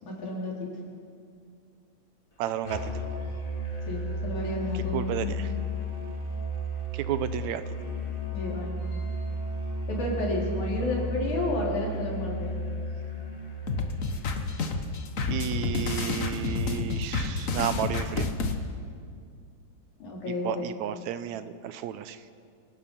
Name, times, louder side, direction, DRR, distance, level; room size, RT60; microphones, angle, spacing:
voice 1, 0.0-0.7 3.9-5.3 8.3-9.1 9.9-12.5 20.0-20.7, left 2 dB, 80° left, -3 dB, 5.6 m, -31 dB
voice 2, 2.4-2.9 4.9-5.5 6.9-7.6 15.3-18.3 20.4-22.2, right 10 dB, 80° right, 12 dB, 2.0 m, -32 dB
Musical instrument, 2.6-14.4, equal, 20° left, 2.1 m, -33 dB
sound 1, 13.7-18.5, left 4 dB, 55° left, 0.8 m, -29 dB
26.5 x 18.0 x 5.6 m, 2.3 s
omnidirectional pair, 3.4 m